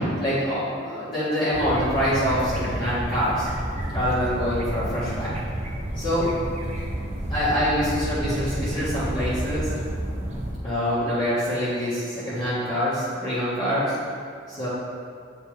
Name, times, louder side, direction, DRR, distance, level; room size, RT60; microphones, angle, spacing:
voice 1, 0.2-3.5 3.9-5.3 6.0-6.3 7.3-9.7 10.6-13.9 14.5-14.7, equal, 25° left, -13 dB, 1.9 m, -25 dB
sound 1, 1.5-10.5, right 1 dB, 35° right, 0.8 m, -30 dB
9.7 x 4.5 x 3.5 m, 2.2 s
head